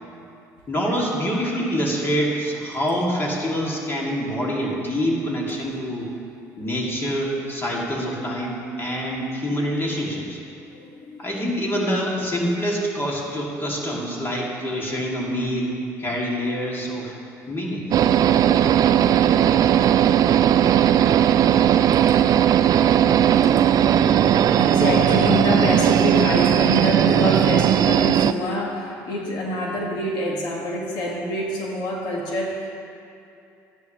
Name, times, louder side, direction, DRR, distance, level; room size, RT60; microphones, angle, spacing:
voice 1, 0.7-6.1 6.6-10.4 11.2-17.1 17.5-17.8, equal, 30° left, -3 dB, 2.6 m, -26 dB
voice 2, 10.7-11.2 18.9-19.7 20.2-20.6 22.9-23.0 23.4-32.7, left 1 dB, 70° left, -2 dB, 1.9 m, -27 dB
sound 1, 17.9-28.3, right 10 dB, 50° right, 0.3 m, -17 dB
13.5 x 10.5 x 3.2 m, 2.7 s
supercardioid pair, 75°, 8 cm